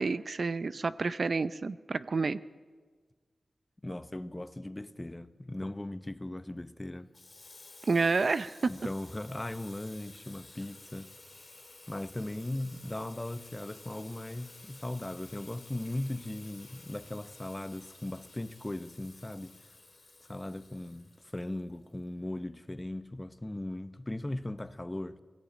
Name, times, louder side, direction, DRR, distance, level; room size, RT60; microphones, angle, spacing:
voice 1, 0.0-2.4 7.9-8.7, right 4 dB, 60° right, 0.6 m, -29 dB
voice 2, 3.8-7.1 8.7-11.1 11.9-19.5 20.3-25.2, left 1 dB, 20° left, 0.9 m, -38 dB
Water tap faucet / Sink (filling or washing), 7.1-21.9, left 2 dB, 45° left, 3.5 m, -53 dB
19.0 x 16.5 x 8.9 m
cardioid pair, 60°, 0 cm